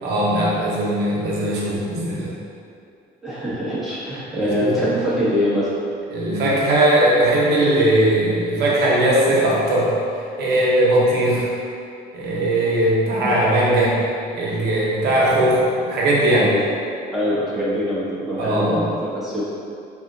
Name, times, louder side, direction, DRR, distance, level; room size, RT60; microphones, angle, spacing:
voice 1, 0.0-2.3 4.4-4.8 6.1-9.9 10.4-11.5 12.1-14.0 14.3-16.5 18.4-18.8, right 1 dB, 80° right, -5 dB, 1.0 m, -19 dB
voice 2, 3.2-5.7 16.4-16.6 17.1-19.5, equal, ahead, -10 dB, 1.3 m, -23 dB
4.0 x 2.7 x 3.9 m, 2.5 s
cardioid pair, 110°, 17 cm